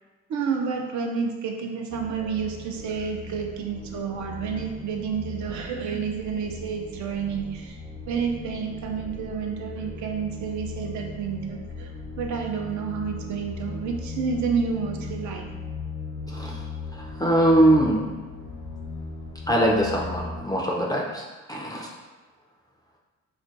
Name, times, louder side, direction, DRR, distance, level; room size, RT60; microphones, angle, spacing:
voice 1, 0.3-7.8 8.1-11.9 12.2-15.5, right 6 dB, 70° right, 2 dB, 0.5 m, -30 dB
sound 1, 1.9-20.4, left 3 dB, 65° left, 0.7 m, -38 dB
voice 2, 16.3-16.6 16.9-18.0 19.5-21.9, right 1 dB, 15° left, -3 dB, 0.3 m, -22 dB
2.4 x 2.2 x 3.9 m, 1.2 s
cardioid pair, 90°, 30 cm